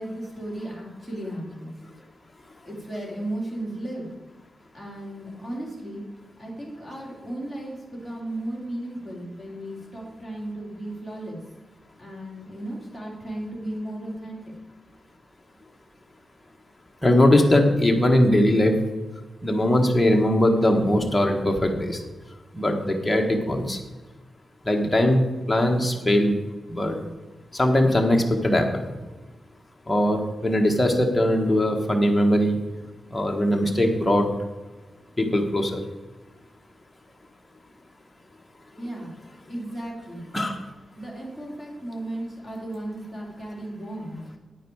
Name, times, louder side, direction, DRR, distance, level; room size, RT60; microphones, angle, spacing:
voice 1, 0.0-1.7 2.6-4.1 4.7-6.0 6.4-11.4 12.0-14.5 38.8-39.1 39.5-40.2 41.0-44.2, right 1 dB, 10° right, -3 dB, 3.2 m, -35 dB
voice 2, 17.0-18.8 19.4-22.0 22.5-23.8 24.6-25.2 25.5-26.4 26.7-27.0 27.5-28.9 29.9-32.6 33.1-34.3 35.2-35.8 40.3-40.6, left 1 dB, 10° left, 2 dB, 1.3 m, -20 dB
9.9 x 9.2 x 4.6 m, 1.2 s
wide cardioid pair, 180°, 0 cm